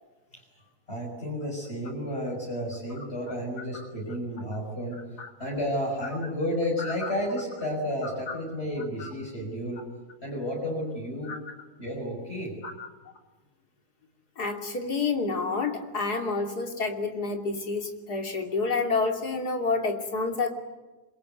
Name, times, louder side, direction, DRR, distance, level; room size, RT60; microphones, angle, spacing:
voice 1, 0.9-5.0 5.4-9.8 10.2-11.3 11.8-12.5, equal, 40° left, -3 dB, 6.2 m, -31 dB
voice 2, 14.4-20.5, left 4 dB, 70° left, 4 dB, 3.5 m, -29 dB
26.5 x 23.0 x 9.3 m, 1.2 s
omnidirectional pair, 1.7 m